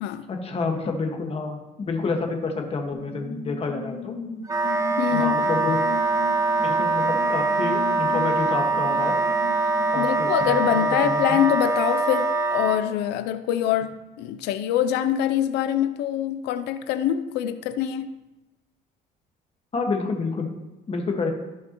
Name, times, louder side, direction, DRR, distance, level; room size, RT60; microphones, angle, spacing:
voice 1, 0.3-4.1 5.1-5.8 6.6-9.1 9.9-11.4 19.7-20.5 20.9-21.3, left 4 dB, 35° left, 2 dB, 1.6 m, -29 dB
sound 1, 2.9-10.3, left 3 dB, 60° left, 2.1 m, -37 dB
Wind instrument woodwind instrument, 4.5-12.8, right 3 dB, 20° right, 0.8 m, -23 dB
voice 2, 5.0-5.5 10.0-18.1, left 10 dB, 90° left, 11 dB, 0.5 m, -24 dB
14.5 x 5.8 x 3.0 m, 1.0 s
cardioid pair, 110°, 17 cm